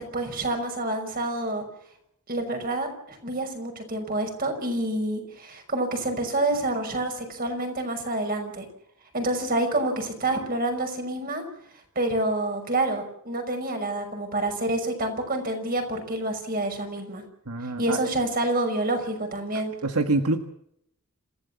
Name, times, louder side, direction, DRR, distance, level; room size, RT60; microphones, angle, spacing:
voice 1, 0.0-1.6 2.3-8.7 9.1-11.4 12.0-17.2 17.8-19.7, right 2 dB, 40° right, 5 dB, 5.7 m, -28 dB
voice 2, 17.5-18.0 19.8-20.4, right 2 dB, 90° right, 6 dB, 1.7 m, -25 dB
27.5 x 16.0 x 7.2 m, 0.74 s
head